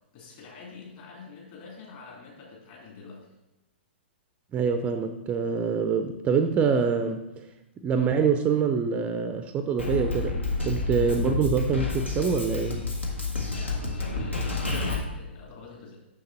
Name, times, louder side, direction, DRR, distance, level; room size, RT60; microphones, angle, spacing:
voice 1, 0.1-3.2 13.5-16.0, left 4 dB, 40° left, -2 dB, 3.0 m, -45 dB
voice 2, 4.5-7.5 7.8-10.4 10.6-12.8, right 6 dB, 20° right, 8 dB, 0.4 m, -25 dB
Drum kit, 9.8-15.0, left 3 dB, 80° left, 1.5 m, -29 dB
6.6 x 6.5 x 4.2 m, 0.99 s
figure-of-eight pair, 110°, 6 cm